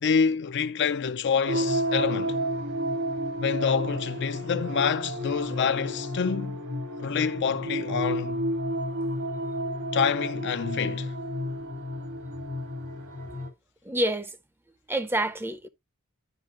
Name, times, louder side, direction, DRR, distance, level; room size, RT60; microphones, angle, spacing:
voice 1, 0.0-2.4 3.4-6.6 7.0-8.4 9.9-11.1, left 6 dB, 55° left, 0.5 m, -27 dB
sound 1, 1.5-13.5, equal, 80° right, 2.4 m, -31 dB
voice 2, 13.8-14.4 14.9-15.7, right 1 dB, 10° right, 0.6 m, -27 dB
12.0 x 5.5 x 2.5 m
head